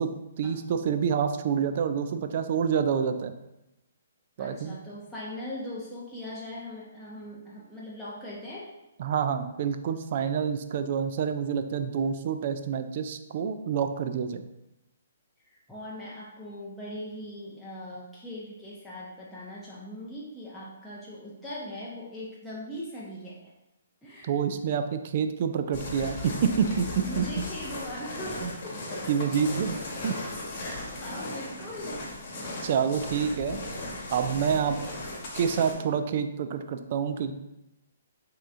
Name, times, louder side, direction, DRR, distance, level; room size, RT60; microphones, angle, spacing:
voice 1, 0.0-3.3 4.4-4.8 9.0-14.4 24.2-27.3 28.4-28.5 29.1-30.2 32.6-33.6 34.1-34.8 35.3-37.3, right 7 dB, 50° right, 8 dB, 0.4 m, -27 dB
voice 2, 4.4-8.7 15.5-23.5 24.0-24.3 27.0-28.8 30.6-32.0, left 1 dB, 5° left, -9 dB, 0.7 m, -40 dB
sound 1, 25.7-35.7, left 2 dB, 45° left, 1.2 m, -37 dB
5.9 x 2.9 x 2.5 m, 0.92 s
figure-of-eight pair, 135°, 0 cm